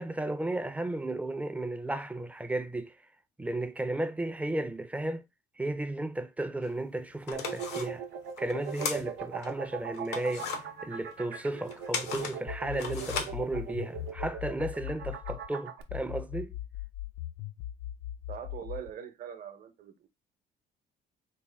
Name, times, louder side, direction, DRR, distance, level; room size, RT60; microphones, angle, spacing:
voice 1, 0.0-2.9 3.4-5.2 5.6-8.0 8.4-10.5 10.8-16.5, right 2 dB, 10° right, 0.4 m, -34 dB
sound 1, 6.6-6.7 7.2-9.5 9.9-14.1, left 6 dB, 85° left, 0.8 m, -37 dB
sound 2, 7.3-15.8, right 8 dB, 90° right, 0.7 m, -40 dB
sound 3, 12.5-15.5 15.9-18.9, left 13 dB, 70° left, 0.4 m, -39 dB
voice 2, 18.3-20.1, right 8 dB, 55° right, 0.8 m, -42 dB
4.2 x 2.1 x 3.4 m
cardioid pair, 110°, 17 cm